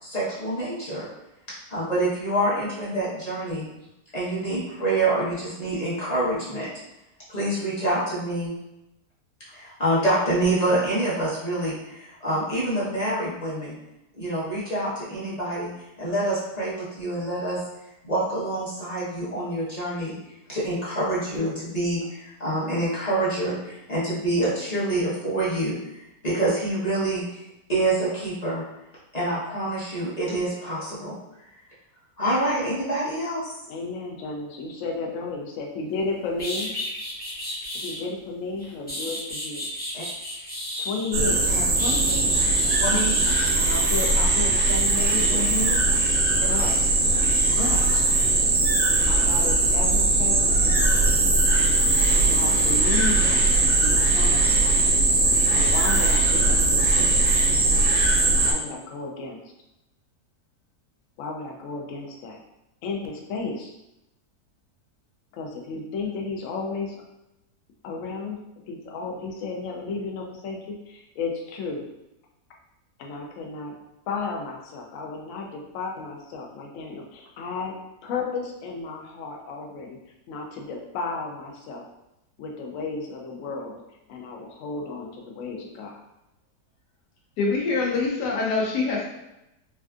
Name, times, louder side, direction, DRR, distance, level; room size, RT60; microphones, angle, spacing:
voice 1, 0.0-1.1 1.7-3.7 4.1-6.7 7.3-8.5 9.5-13.8 14.2-17.6 18.0-20.1 20.5-26.0 26.2-27.4 27.7-28.6 29.1-31.2 32.2-33.5 39.9-40.0 41.5-41.6 42.7-43.1 45.3-45.8, right 1 dB, 30° left, 0.8 m, -26 dB
voice 2, 33.7-36.7 37.7-39.7 40.8-42.5 43.6-45.5 46.5-46.7 47.4-48.1 49.0-50.7 52.2-54.7 55.5-57.3 58.4-59.4 61.2-62.4 62.8-63.7 65.3-67.0 67.8-68.4 68.7-71.8 73.0-73.7 74.1-77.7 78.0-80.0 80.3-81.9 82.4-83.8 84.1-86.0, left 4 dB, 65° left, 0.8 m, -33 dB
sound 1, 36.0-36.1 36.4-38.0 38.6-41.2 41.8-43.5, left 1 dB, 15° left, 0.4 m, -33 dB
sound 2, 41.1-58.5, right 2 dB, 70° right, 1.0 m, -20 dB
voice 3, 87.4-89.1, left 4 dB, 85° left, 1.2 m, -24 dB
3.3 x 2.5 x 2.3 m
omnidirectional pair, 1.7 m